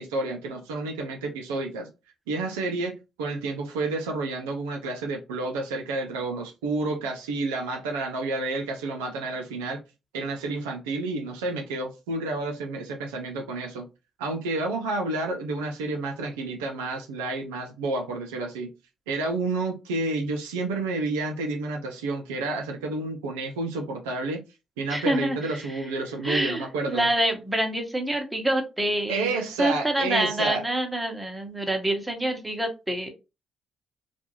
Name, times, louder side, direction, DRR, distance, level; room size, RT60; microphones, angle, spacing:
voice 1, 0.0-1.9 2.3-9.8 10.1-13.9 14.2-18.7 19.1-24.4 24.8-27.1 29.1-30.6, right 3 dB, 90° right, 0.5 m, -30 dB
voice 2, 24.9-25.7 26.2-33.1, right 1 dB, 10° right, 0.9 m, -27 dB
2.5 x 2.3 x 2.9 m
hypercardioid pair, 55°, 0 cm